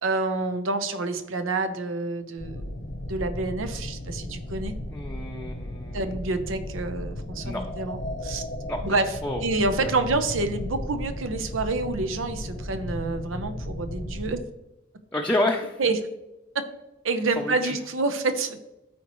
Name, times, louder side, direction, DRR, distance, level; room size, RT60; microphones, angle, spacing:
voice 1, 0.0-2.7 3.1-4.7 5.9-8.4 8.8-9.2 9.4-14.4 15.8-16.0 16.5-16.6 17.0-18.6, right 3 dB, 85° right, 9 dB, 0.7 m, -28 dB
sound 1, 2.4-14.4, left 1 dB, 65° left, 0.9 m, -35 dB
voice 2, 4.9-6.0 7.4-7.6 8.7-8.8 9.2-9.4 15.1-15.8 17.4-17.8, left 1 dB, 10° left, 0 dB, 0.6 m, -28 dB
13.0 x 4.3 x 3.1 m, 0.94 s
head